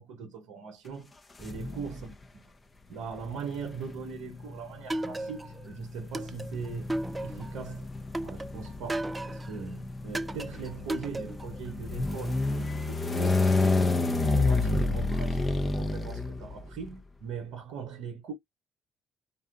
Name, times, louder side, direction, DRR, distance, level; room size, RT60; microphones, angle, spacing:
voice 1, 0.0-2.1 2.9-6.9 7.2-7.9 8.2-13.9 14.2-18.3, right 6 dB, 75° right, 0.7 m, -40 dB
sound 1, 1.4-2.1 3.2-16.9, left 3 dB, 30° left, 0.6 m, -29 dB
sound 2, 4.9-5.7 6.1-7.6 8.1-9.6 10.1-11.6, right 1 dB, 20° right, 0.5 m, -35 dB
2.7 x 2.2 x 2.3 m
hypercardioid pair, 50°, 0 cm